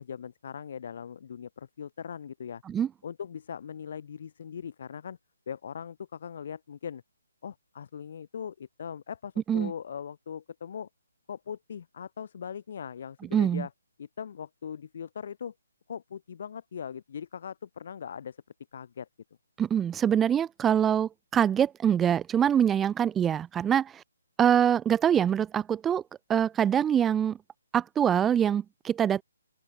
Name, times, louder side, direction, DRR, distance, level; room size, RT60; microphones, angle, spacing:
voice 1, 0.0-2.6 3.0-5.2 5.5-7.0 7.4-10.9 11.3-13.7 14.0-15.5 15.9-18.4 18.7-19.1, left 7 dB, 50° left, 3.7 m, -40 dB
voice 2, 13.3-13.7 19.6-24.0 24.4-26.0 26.3-27.4 27.7-29.2, right 9 dB, 10° right, 0.4 m, -24 dB
open air
hypercardioid pair, 155°, 0 cm